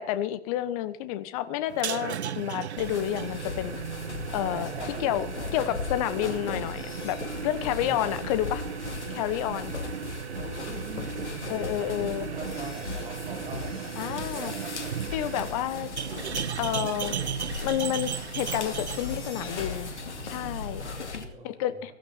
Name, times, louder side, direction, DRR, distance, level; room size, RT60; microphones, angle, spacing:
voice 1, 0.0-3.7 4.3-4.7 5.0-5.3 5.5-7.2 7.4-8.6 9.1-9.7 11.5-12.3 14.0-14.5 15.1-15.9 16.6-17.2 17.6-19.9 20.3-20.8 21.4-21.9, left 12 dB, 30° left, 14 dB, 1.1 m, -30 dB
sound 1, 1.7-21.1, right 9 dB, 65° right, 0.8 m, -36 dB
sound 2, 2.3-3.7 4.2-4.3 4.5-4.7 5.0-5.7 6.5-8.7 9.5-10.2 10.6-16.5 17.3-20.9, left 5 dB, 55° left, 7.7 m, -52 dB
sound 3, 2.8-21.2, left 5 dB, 70° left, 2.5 m, -38 dB
voice 2, 4.4-5.8 7.7-8.0 10.2-14.9 18.9-20.4 20.7-21.8, right 3 dB, 15° right, 0 dB, 4.7 m, -43 dB
16.0 x 15.0 x 4.2 m, 0.71 s
figure-of-eight pair, 125°, 36 cm